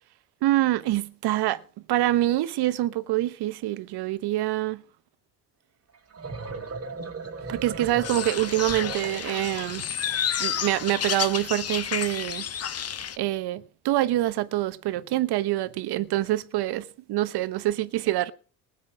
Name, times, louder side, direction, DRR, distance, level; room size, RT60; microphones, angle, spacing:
voice 1, 0.4-1.6 1.9-4.8 7.5-9.8 10.1-12.5 13.2-18.3, right 15 dB, 60° right, 1.2 m, -26 dB
sound 1, 5.9-9.8, right 4 dB, 30° right, 2.1 m, -37 dB
sound 2, 8.0-13.2, left 9 dB, 35° left, 0.9 m, -30 dB
19.5 x 8.3 x 4.8 m
hypercardioid pair, 65°, 45 cm